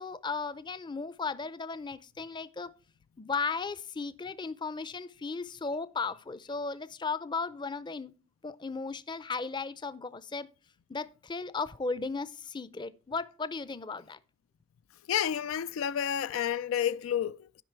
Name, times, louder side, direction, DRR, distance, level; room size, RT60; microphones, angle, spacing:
voice 1, 0.0-2.7 3.2-8.2 8.4-10.5 10.9-14.2, left 4 dB, 25° left, 0.5 m, -36 dB
voice 2, 15.1-17.6, left 9 dB, 90° left, 0.3 m, -30 dB
12.0 x 5.3 x 4.5 m
head